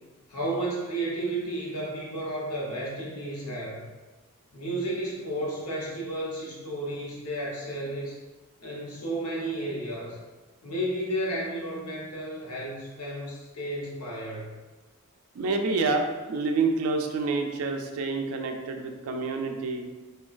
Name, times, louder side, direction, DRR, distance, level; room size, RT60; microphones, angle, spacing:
voice 1, 0.3-3.9 4.5-8.2 8.6-10.2 10.6-14.5, right 1 dB, 90° left, -4 dB, 0.8 m, -32 dB
voice 2, 15.3-19.9, right 3 dB, 75° right, 4 dB, 0.3 m, -28 dB
2.9 x 2.2 x 2.4 m, 1.3 s
head